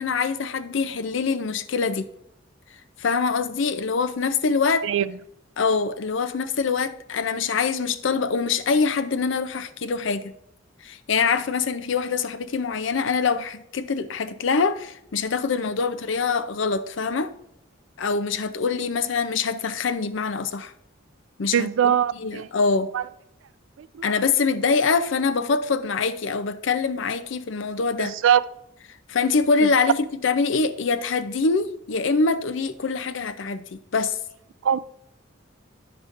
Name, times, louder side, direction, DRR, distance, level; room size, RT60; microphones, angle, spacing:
voice 1, 0.0-2.1 3.0-4.9 5.6-10.3 10.8-17.3 18.0-20.7 21.4-22.9 24.0-28.2 29.1-34.2, left 4 dB, 65° left, 0.5 m, -24 dB
voice 2, 21.5-22.5 22.9-23.0 28.0-28.4 34.6-34.8, right 9 dB, 70° right, 0.3 m, -21 dB
9.8 x 6.6 x 2.5 m
head